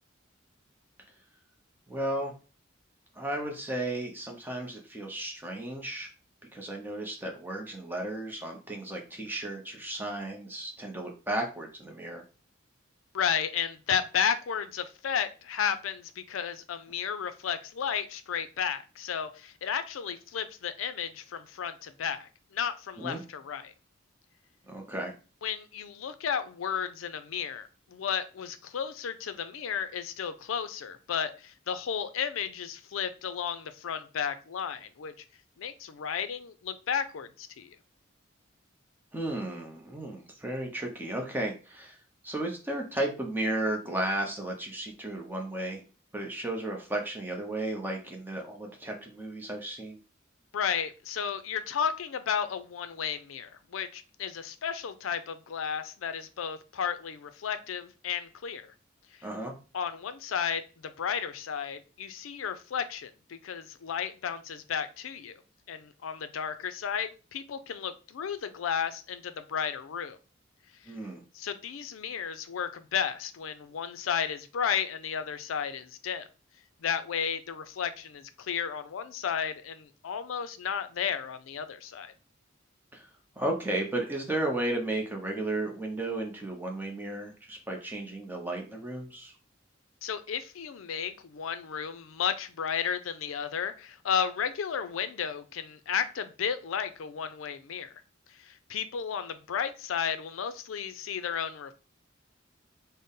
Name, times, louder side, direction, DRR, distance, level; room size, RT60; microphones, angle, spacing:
voice 1, 1.9-2.3 3.2-6.1 6.5-12.2 23.0-23.2 24.7-25.1 39.1-42.0 42.2-45.8 46.1-50.0 59.2-59.5 70.9-71.2 82.9-83.1 83.4-89.3, right 1 dB, 10° right, 1 dB, 0.7 m, -34 dB
voice 2, 13.1-23.7 25.4-35.1 35.6-37.8 50.5-58.7 59.2-59.3 59.7-65.4 65.7-70.2 71.3-76.3 76.8-82.1 90.0-97.9 98.4-101.7, left 7 dB, 85° left, 11 dB, 0.4 m, -33 dB
3.9 x 2.1 x 3.6 m, 0.34 s
head